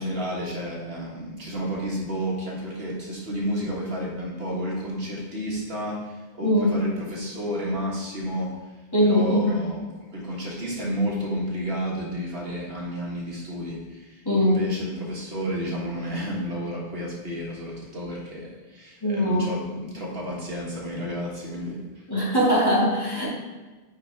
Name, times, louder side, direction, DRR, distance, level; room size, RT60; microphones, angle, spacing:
voice 1, 0.0-8.5 9.1-22.0, equal, 60° right, -4 dB, 1.7 m, -31 dB
voice 2, 6.4-6.8 8.9-9.6 14.3-14.6 19.0-19.5 22.1-23.3, equal, 20° left, -7 dB, 2.0 m, -21 dB
8.4 x 4.8 x 3.4 m, 1.2 s
omnidirectional pair, 1.1 m